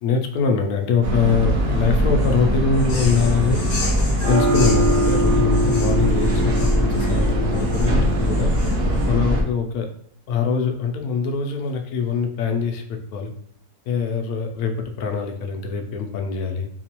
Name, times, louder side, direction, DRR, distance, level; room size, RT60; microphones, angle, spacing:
voice 1, 0.0-3.7 4.3-8.5 9.0-9.9 10.3-13.3 13.9-16.7, left 5 dB, 75° left, 4 dB, 1.0 m, -23 dB
sound 1, 1.0-9.4, equal, 50° right, 0.8 m, -20 dB
sound 2, 2.8-9.1, left 3 dB, 50° left, 0.8 m, -35 dB
4.3 x 2.4 x 2.9 m, 0.67 s
omnidirectional pair, 1.7 m